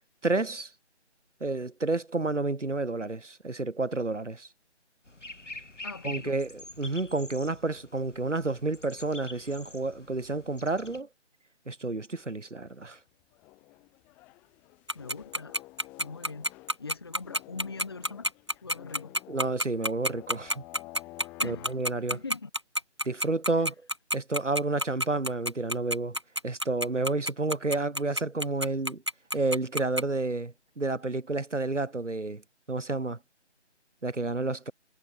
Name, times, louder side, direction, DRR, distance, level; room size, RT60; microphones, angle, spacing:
voice 1, 0.2-0.7 1.4-4.5 6.0-11.1 11.7-13.0 19.3-20.6 21.4-22.2 23.1-23.7 24.1-26.2 26.4-29.0 29.3-32.4 32.7-33.2 34.0-34.7, right 3 dB, 90° right, 2.1 m, -30 dB
sound 1, 5.0-11.0, left 2 dB, 85° left, 7.2 m, -45 dB
voice 2, 5.8-6.3 14.9-15.6 16.0-16.5 16.8-18.3 18.6-19.1 21.4-21.7 22.1-22.5 23.6-23.7, left 4 dB, 20° left, 0.8 m, -41 dB
sound 2, 11.9-12.4 12.8-12.9 13.1-22.4, left 21 dB, 5° left, 1.2 m, -51 dB
Tick-tock, 14.9-30.0, equal, 25° right, 0.5 m, -28 dB
figure-of-eight pair, 160°, 35 cm